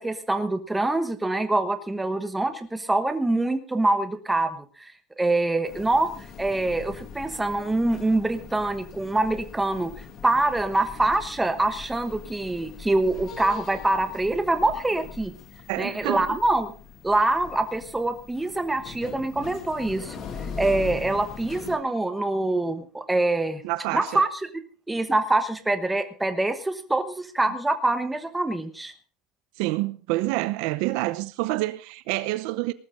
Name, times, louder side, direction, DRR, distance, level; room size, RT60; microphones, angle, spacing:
voice 1, 0.0-6.1 6.4-9.9 10.2-15.3 15.8-16.7 17.0-20.2 20.6-23.6 23.9-24.3 24.9-28.9, right 2 dB, 5° right, 1.2 m, -25 dB
sound 1, 5.7-21.8, left 6 dB, 35° left, 2.2 m, -41 dB
voice 2, 15.7-16.3 23.6-24.2 29.6-32.7, right 19 dB, 65° right, 0.7 m, -27 dB
19.0 x 13.0 x 3.7 m
cardioid pair, 170°, 0 cm